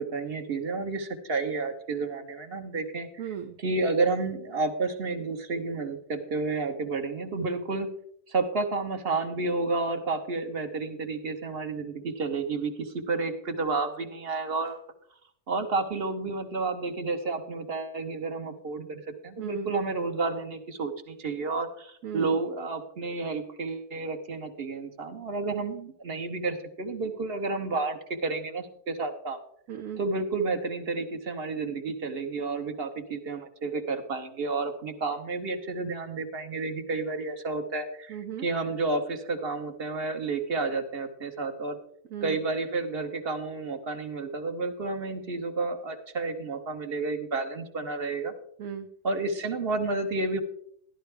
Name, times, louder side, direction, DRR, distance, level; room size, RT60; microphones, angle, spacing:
voice 1, 0.0-3.1 3.6-7.9 8.3-14.8 15.5-29.4 30.0-38.2 38.4-41.8 42.2-48.3 49.0-50.4, right 3 dB, 40° right, 6 dB, 1.3 m, -31 dB
voice 2, 3.2-3.6 19.4-19.7 22.0-22.4 29.7-30.0 38.1-38.5 42.1-42.4 48.6-48.9, right 8 dB, 65° right, 4 dB, 1.1 m, -36 dB
13.0 x 11.5 x 3.4 m, 0.67 s
omnidirectional pair, 1.6 m